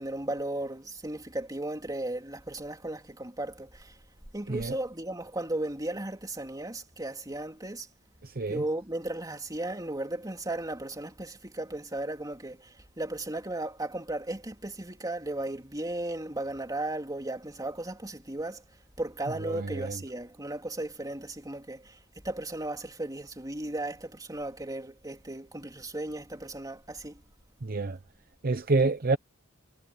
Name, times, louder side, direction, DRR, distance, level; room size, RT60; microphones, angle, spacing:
voice 1, 0.0-4.0 4.3-7.9 8.5-18.6 19.0-22.0 22.2-27.2, right 1 dB, 20° right, 3.4 m, -35 dB
voice 2, 8.2-8.6 19.4-20.0 27.6-28.0 28.4-29.2, right 3 dB, 45° right, 0.8 m, -28 dB
head